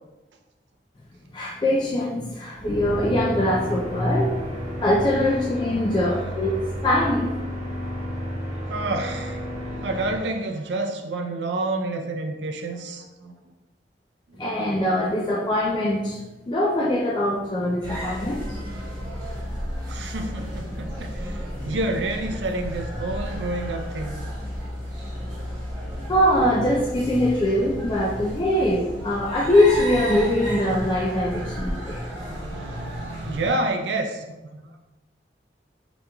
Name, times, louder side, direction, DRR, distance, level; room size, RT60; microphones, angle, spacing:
voice 1, 1.3-6.6 6.8-7.4 14.4-16.2 16.5-18.6 26.1-32.1, left 1 dB, 25° left, -5 dB, 0.4 m, -22 dB
sound 1, 2.6-10.2, equal, 40° right, 1.1 m, -32 dB
voice 2, 8.7-9.5 9.7-13.3 14.3-14.4 19.9-24.2 32.1-34.3 34.5-34.8, right 2 dB, 85° right, 4 dB, 0.5 m, -29 dB
sound 2, 17.8-33.5, equal, 20° right, 1.1 m, -33 dB
5.0 x 2.9 x 2.3 m, 1.1 s
head